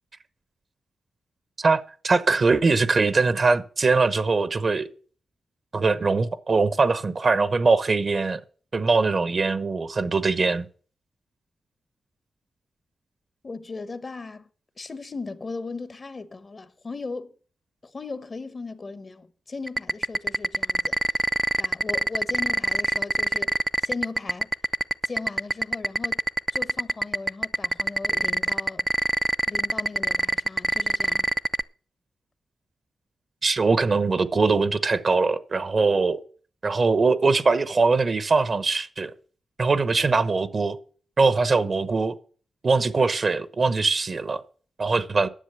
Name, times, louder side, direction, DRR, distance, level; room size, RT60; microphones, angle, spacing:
voice 1, 1.6-4.9 5.7-8.4 8.7-10.7 33.4-36.2 36.6-39.1 39.6-40.8 41.2-42.1 42.6-44.4 44.8-45.3, right 4 dB, 50° right, 0.9 m, -22 dB
voice 2, 13.4-14.5 14.8-17.3 17.8-21.0 21.6-24.5 25.0-26.2 26.5-28.9 29.5-31.3, left 3 dB, 45° left, 1.0 m, -37 dB
sound 1, 19.7-31.6, right 2 dB, 25° right, 0.5 m, -22 dB
10.0 x 7.2 x 6.8 m
cardioid pair, 55°, 0 cm